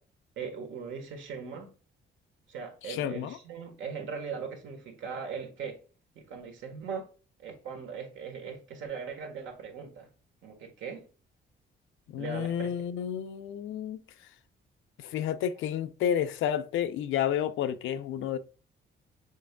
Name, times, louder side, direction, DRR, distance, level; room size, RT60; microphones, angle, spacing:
voice 1, 0.4-1.7 2.5-5.8 6.1-7.1 7.4-10.1 10.4-11.1 12.2-12.7, right 6 dB, 75° right, 1.4 m, -39 dB
voice 2, 2.9-3.4 12.1-14.0 15.0-18.4, left 9 dB, 85° left, 0.6 m, -30 dB
6.4 x 3.5 x 2.2 m
cardioid pair, 90°, 20 cm